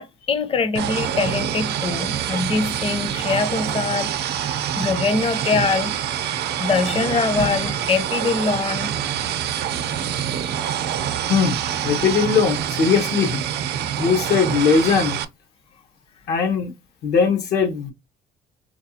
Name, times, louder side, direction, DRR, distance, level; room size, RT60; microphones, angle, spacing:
voice 1, 0.0-6.2 6.6-8.9, left 4 dB, 35° left, 0.7 m, -23 dB
sound 1, 0.7-15.2, right 9 dB, 75° right, 0.6 m, -26 dB
voice 2, 11.8-13.4 14.0-15.2 16.3-16.7 17.0-17.9, left 6 dB, 75° left, 1.0 m, -19 dB
4.4 x 2.3 x 2.7 m
cardioid pair, 110°, 17 cm